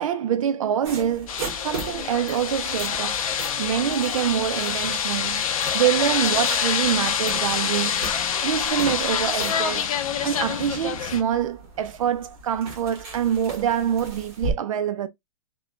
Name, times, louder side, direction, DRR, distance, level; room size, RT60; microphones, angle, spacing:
voice 1, 0.0-1.4 1.6-3.2 3.6-8.1 8.4-9.9 10.2-15.1, right 9 dB, 65° right, 0.4 m, -25 dB
sound 1, 0.8-14.5, right 3 dB, 45° right, 1.4 m, -38 dB
sound 2, 1.3-11.2, left 8 dB, 70° left, 0.6 m, -26 dB
3.1 x 2.2 x 2.3 m
hypercardioid pair, 170°, 18 cm